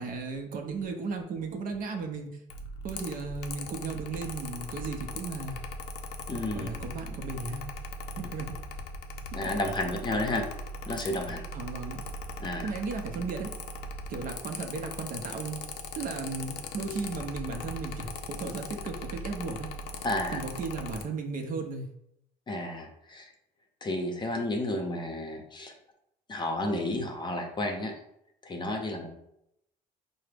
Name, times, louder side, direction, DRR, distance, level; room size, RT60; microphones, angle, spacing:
voice 1, 0.0-2.4 2.8-5.6 6.6-7.7 8.1-8.5 11.5-12.0 12.6-13.5 14.1-15.6 16.0-19.7 20.3-21.9, right 4 dB, 55° right, 4 dB, 0.6 m, -35 dB
Mechanical fan, 2.5-21.0, left 2 dB, 85° left, 0.5 m, -39 dB
voice 2, 6.3-6.7 9.3-10.4 10.9-11.4 12.4-12.7 20.0-20.4 22.5-23.3 23.8-25.7 26.3-27.9 28.4-29.1, left 1 dB, 25° left, 3 dB, 0.7 m, -31 dB
4.6 x 2.1 x 3.4 m, 0.78 s
cardioid pair, 110°, 17 cm